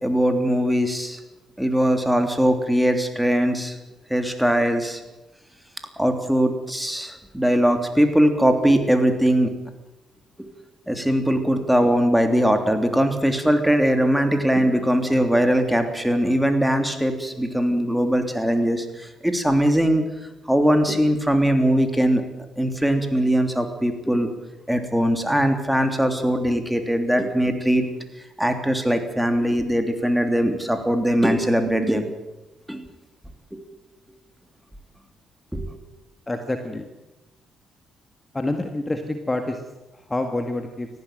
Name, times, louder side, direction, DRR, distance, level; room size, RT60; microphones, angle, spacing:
voice 1, 0.0-1.2 1.6-3.8 4.1-5.0 6.0-9.5 10.9-20.0 20.5-22.2 22.6-24.3 24.7-27.8 28.4-32.1 32.7-32.8 33.5-33.6 35.5-35.6, equal, 5° right, 6 dB, 3.2 m, -21 dB
voice 2, 36.3-36.9 38.3-39.6 40.1-40.9, left 2 dB, 20° left, 6 dB, 2.0 m, -27 dB
18.5 x 15.0 x 9.3 m, 1.0 s
cardioid pair, 90°, 0 cm